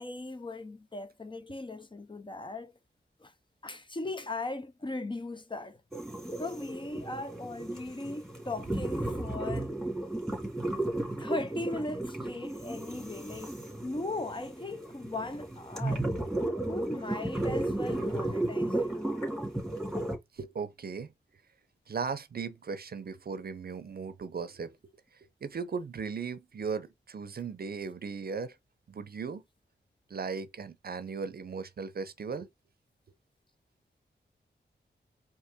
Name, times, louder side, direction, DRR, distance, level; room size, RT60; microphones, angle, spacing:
voice 1, 0.0-2.8 3.2-3.3 3.6-5.8 6.4-9.7 11.2-13.5 13.8-16.1 16.7-18.9, left 2 dB, 25° left, 0.6 m, -38 dB
sound 1, 5.9-20.2, right 1 dB, ahead, 2.0 m, -34 dB
voice 2, 20.3-21.1 21.9-24.8 25.4-28.6 28.9-29.4 30.1-32.5, right 5 dB, 55° right, 0.6 m, -37 dB
4.5 x 2.8 x 3.5 m
wide cardioid pair, 85°, 19 cm